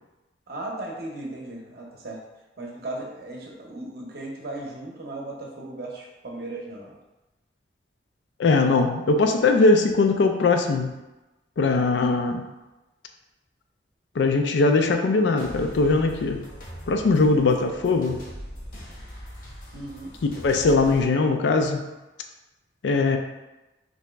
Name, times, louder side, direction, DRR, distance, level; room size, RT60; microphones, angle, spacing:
voice 1, 0.5-2.2 2.6-6.9 19.7-20.1, right 2 dB, 55° right, -1 dB, 0.7 m, -36 dB
voice 2, 8.4-10.9 11.6-12.5 14.2-16.4 16.9-18.2 20.4-21.8 22.8-23.2, left 3 dB, 75° left, 5 dB, 0.4 m, -20 dB
sound 1, 15.4-21.0, equal, 50° left, 0.8 m, -41 dB
2.9 x 2.7 x 3.3 m, 1.1 s
head